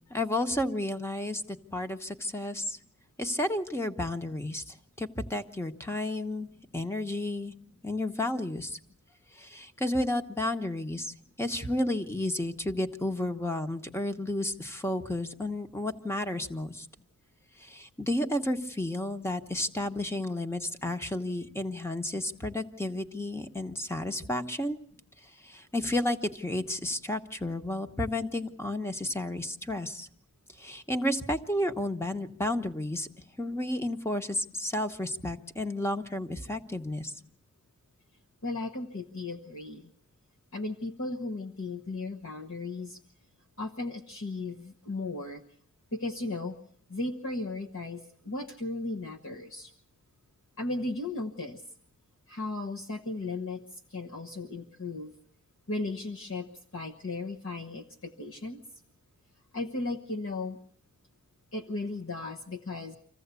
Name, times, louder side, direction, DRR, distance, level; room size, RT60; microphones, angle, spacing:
voice 1, 0.1-2.8 3.2-6.5 6.7-7.5 7.8-8.8 9.3-16.9 17.6-24.8 25.2-30.1 30.6-33.1 33.4-37.2, left 1 dB, 10° left, 8 dB, 1.0 m, -32 dB
voice 2, 38.4-39.9 40.5-43.0 43.6-45.4 45.9-46.6 46.9-49.7 50.6-51.6 52.3-53.6 53.9-55.1 55.7-56.5 56.7-58.6 59.5-60.6 61.5-62.9, left 2 dB, 65° left, 3 dB, 1.2 m, -35 dB
26.0 x 15.5 x 8.2 m, 0.65 s
head